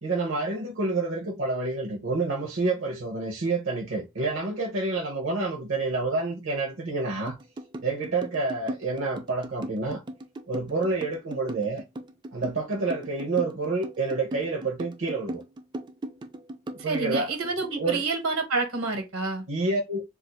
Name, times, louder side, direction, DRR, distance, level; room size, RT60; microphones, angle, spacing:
voice 1, 0.0-7.4 7.8-10.0 10.5-11.8 12.3-15.4 16.8-18.0 19.5-20.0, right 3 dB, 60° right, 0.7 m, -28 dB
sound 1, 7.3-17.8, right 1 dB, 20° right, 0.3 m, -37 dB
voice 2, 16.9-19.4, right 3 dB, 80° right, 1.2 m, -28 dB
2.5 x 2.4 x 4.0 m
head